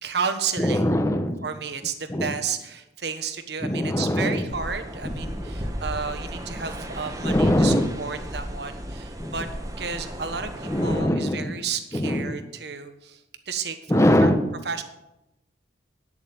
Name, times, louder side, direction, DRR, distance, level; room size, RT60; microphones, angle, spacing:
voice 1, 0.0-0.9 1.4-9.5 9.8-14.3 14.6-14.8, right 6 dB, 60° right, 8 dB, 1.2 m, -32 dB
voice 2, 0.6-1.4 2.1-2.3 3.6-4.5 5.0-5.5 7.2-7.9 9.2-9.3 10.7-11.5 11.9-12.4 13.9-14.4, left 1 dB, 15° left, 8 dB, 0.9 m, -22 dB
sound 1, 4.5-11.0, equal, 20° right, 1.2 m, -35 dB
10.0 x 7.2 x 8.8 m, 0.94 s
head